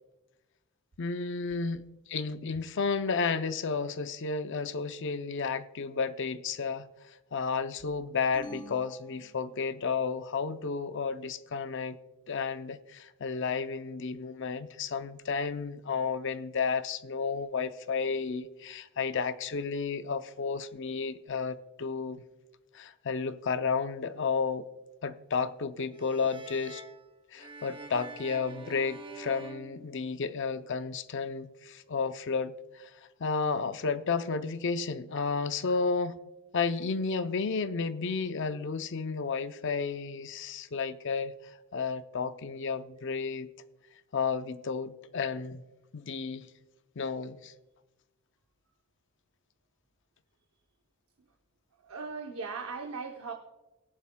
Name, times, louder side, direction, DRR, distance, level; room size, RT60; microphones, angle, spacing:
voice 1, 1.0-12.0 12.3-22.2 22.7-24.6 25.0-26.8 27.3-36.2 36.5-43.5 44.1-45.6 45.9-46.5 47.0-47.5, left 5 dB, 55° left, 0.5 m, -32 dB
sound 1, 8.3-10.0, equal, 20° left, 0.9 m, -47 dB
sound 2, 25.9-30.6, right 3 dB, 20° right, 0.7 m, -48 dB
voice 2, 51.8-53.3, right 4 dB, 70° right, 0.8 m, -38 dB
19.0 x 10.5 x 2.2 m
head